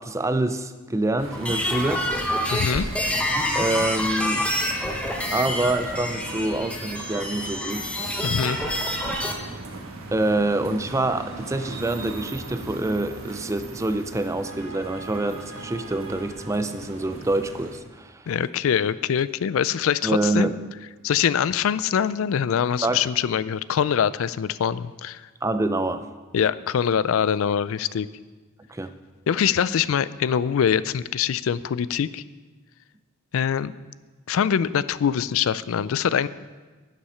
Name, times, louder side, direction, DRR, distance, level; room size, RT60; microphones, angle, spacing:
voice 1, 0.0-2.1 3.5-4.5 5.3-7.9 10.1-18.3 20.0-20.6 22.8-23.0 25.4-26.1 28.7-28.9, right 2 dB, 15° right, 10 dB, 0.4 m, -26 dB
sound 1, 1.2-17.8, right 2 dB, 70° right, 1.4 m, -38 dB
sound 2, 1.3-9.3, left 1 dB, 5° left, 0.9 m, -27 dB
voice 2, 2.5-2.9 8.2-8.6 18.3-20.5 21.0-25.2 26.3-28.1 29.3-32.2 33.3-33.7 34.3-36.3, left 8 dB, 65° left, 17 dB, 0.3 m, -23 dB
11.5 x 7.3 x 5.6 m, 1.3 s
head